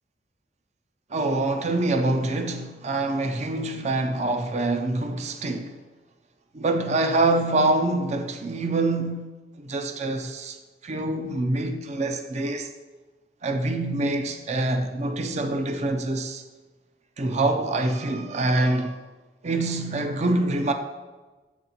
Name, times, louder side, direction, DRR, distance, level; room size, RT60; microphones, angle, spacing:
voice 1, 1.1-5.8 6.5-9.3 9.6-10.6 10.8-12.7 13.4-16.4 17.2-19.0 19.4-20.7, right 2 dB, 40° right, 0.5 m, -25 dB
7.7 x 4.1 x 4.2 m
head